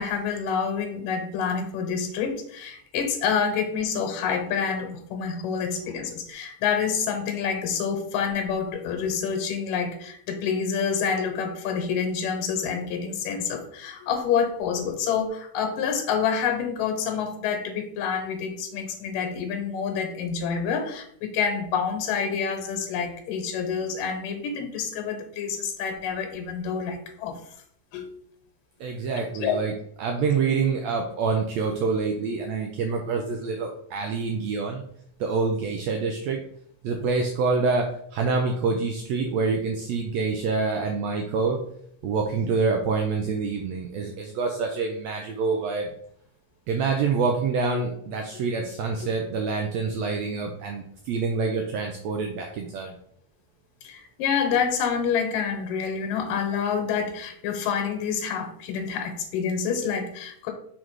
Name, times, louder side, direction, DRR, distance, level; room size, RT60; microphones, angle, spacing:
voice 1, 0.0-27.4 27.9-28.2 29.4-29.6 47.7-47.8 48.3-48.4 53.8-60.5, left 6 dB, 90° left, 4 dB, 2.7 m, -27 dB
voice 2, 28.8-34.8 35.2-36.4 36.8-41.6 42.0-45.9 46.7-52.9, right 4 dB, 80° right, 2 dB, 1.5 m, -26 dB
6.2 x 3.8 x 4.6 m, 0.66 s
omnidirectional pair, 3.8 m